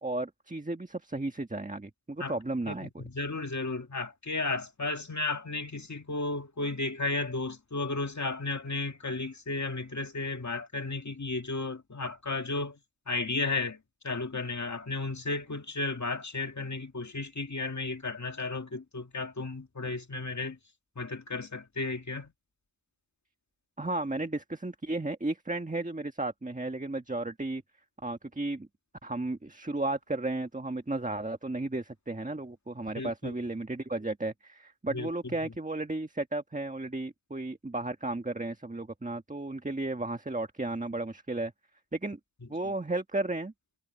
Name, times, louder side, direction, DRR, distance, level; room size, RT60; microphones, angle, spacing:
voice 1, 0.0-3.0 23.8-27.6 28.0-28.7 29.0-41.5 41.9-42.2 42.5-43.5, right 2 dB, 20° right, 1.4 m, -34 dB
voice 2, 2.7-12.8 13.1-13.8 14.0-20.6 21.0-22.3 33.0-33.3 34.9-35.3, left 3 dB, 40° left, 2.3 m, -34 dB
wide cardioid pair, 80°, 43 cm